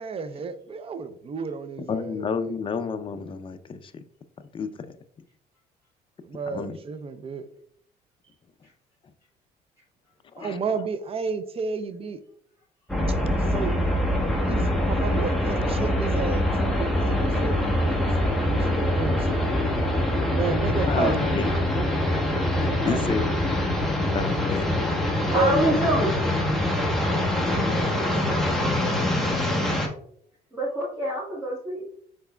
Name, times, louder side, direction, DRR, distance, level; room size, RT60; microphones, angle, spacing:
voice 1, 0.0-2.5 6.2-7.4 10.4-12.2 13.1-13.8 14.4-19.8 20.3-21.9 22.5-23.4 25.3-26.0 26.6-29.1, right 5 dB, 35° right, 12 dB, 0.5 m, -33 dB
voice 2, 1.9-4.0 4.5-4.9 6.5-6.8 10.3-10.6 20.9-21.5 22.8-23.3 24.1-24.7, left 5 dB, 30° left, 10 dB, 0.5 m, -30 dB
sound 1, 12.9-29.9, left 1 dB, ahead, 0.9 m, -24 dB
voice 3, 25.3-26.1 30.5-31.8, equal, 15° right, -8 dB, 1.7 m, -25 dB
5.9 x 3.9 x 2.2 m, 0.62 s
cardioid pair, 110°, 17 cm